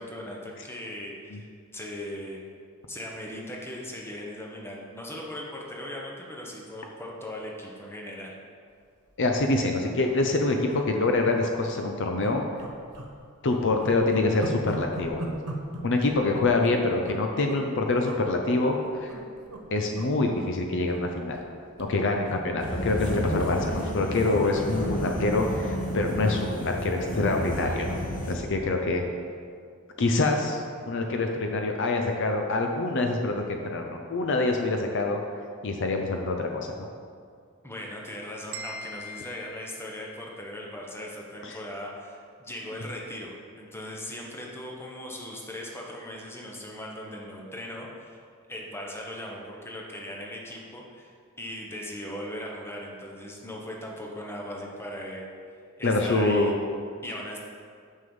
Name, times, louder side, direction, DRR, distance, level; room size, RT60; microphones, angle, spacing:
voice 1, 0.0-1.5 1.7-2.4 2.9-8.3 37.6-48.2 48.5-51.1 51.4-56.5 57.0-57.4, left 1 dB, 10° left, -2 dB, 1.1 m, -39 dB
voice 2, 9.2-12.4 13.4-15.4 15.8-19.2 19.7-21.5 21.8-28.0 28.3-29.0 30.0-35.2 35.6-36.9 41.4-41.6 55.8-56.5, left 2 dB, 55° left, 3 dB, 0.6 m, -26 dB
sound 1, 9.2-9.4 9.7-9.8 10.0-10.2 10.7-11.4 11.7-11.9 12.2-13.1 13.4-17.7 18.0-18.2 18.8-19.6 19.9-20.1 20.4-21.5 21.8-26.3 26.7-26.9, right 1 dB, 90° right, 1.2 m, -40 dB
sound 2, 22.6-28.3, equal, 40° left, 1.5 m, -31 dB
sound 3, 38.5-40.5, equal, 65° right, 0.8 m, -42 dB
6.6 x 5.5 x 7.0 m, 2.2 s
head